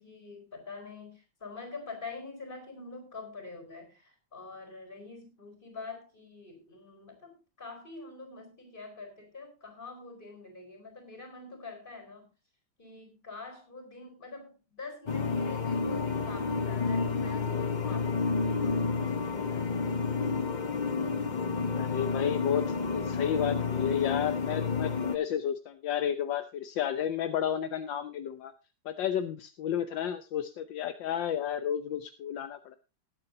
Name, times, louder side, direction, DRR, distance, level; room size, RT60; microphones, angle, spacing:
voice 1, 0.0-12.3 12.8-19.6, left 3 dB, 25° left, 4 dB, 4.6 m, -45 dB
sound 1, 15.1-25.2, left 4 dB, 40° left, 0.6 m, -30 dB
voice 2, 21.8-28.5 28.8-32.8, left 9 dB, 75° left, 10 dB, 1.5 m, -32 dB
19.5 x 8.9 x 2.7 m, 0.27 s
omnidirectional pair, 2.0 m